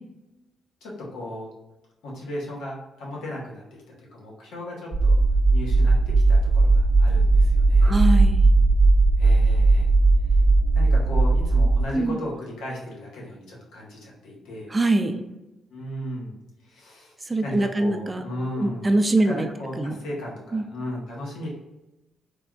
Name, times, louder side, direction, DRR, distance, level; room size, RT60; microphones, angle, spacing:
voice 1, 0.8-1.5 2.0-5.2 5.5-8.0 9.2-9.9 10.8-14.7 15.7-16.3 16.6-17.2 17.4-18.9 19.2-21.5, left 1 dB, 90° left, -3 dB, 0.9 m, -36 dB
sound 1, 4.9-11.9, right 3 dB, 5° left, 1.0 m, -18 dB
voice 2, 7.8-8.4 11.9-12.2 14.7-15.2 17.3-18.2 18.6-19.5 19.8-20.0 20.5-20.6, right 2 dB, 20° right, 7 dB, 0.3 m, -23 dB
3.3 x 2.2 x 2.3 m, 1.0 s
cardioid pair, 95°, 0 cm